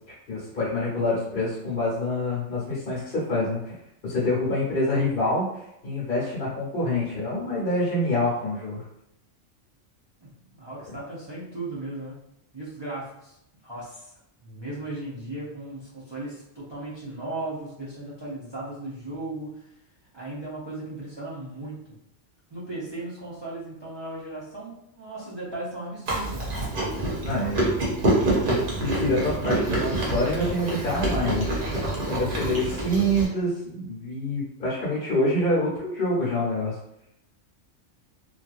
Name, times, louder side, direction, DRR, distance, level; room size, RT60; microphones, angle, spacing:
voice 1, 0.3-3.7 4.0-5.5 5.8-8.8 27.2-27.8 28.8-31.5 32.0-36.7, left 1 dB, 50° left, -8 dB, 1.0 m, -26 dB
voice 2, 10.2-12.2 12.5-13.4 13.6-14.1 14.4-19.7 20.1-21.8 22.5-26.5, right 2 dB, 35° right, -9 dB, 0.4 m, -36 dB
Chewing mastication, 26.1-33.3, right 1 dB, 50° right, 0.8 m, -26 dB
2.7 x 2.3 x 2.4 m, 0.79 s
omnidirectional pair, 1.3 m